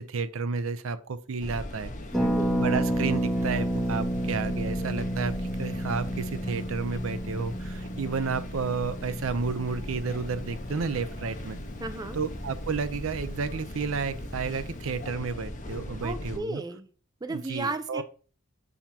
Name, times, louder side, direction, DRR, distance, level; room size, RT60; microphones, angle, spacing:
voice 1, 0.0-1.9 2.5-11.6 12.1-16.6 17.3-18.0, right 4 dB, 70° right, 13 dB, 0.6 m, -31 dB
sound 1, 1.4-16.4, left 1 dB, 35° left, 0.9 m, -39 dB
Harp, 2.1-11.8 12.0-12.1 12.3-12.6, right 1 dB, ahead, 0.9 m, -31 dB
voice 2, 2.2-2.5 11.8-12.2 16.0-16.9 17.2-18.0, right 3 dB, 20° right, 10 dB, 0.4 m, -34 dB
7.1 x 2.8 x 5.9 m, 0.40 s
head